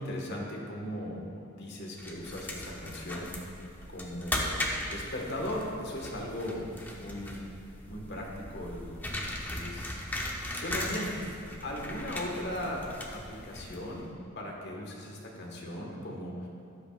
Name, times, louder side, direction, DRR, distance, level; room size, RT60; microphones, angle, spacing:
voice 1, 0.0-3.3 3.9-7.4 7.8-9.2 9.5-10.0 10.5-11.2 11.6-16.5, left 1 dB, 55° left, -1 dB, 1.6 m, -38 dB
sound 1, 2.0-14.0, left 1 dB, 10° left, 0.9 m, -38 dB
13.0 x 10.5 x 2.5 m, 2.4 s
head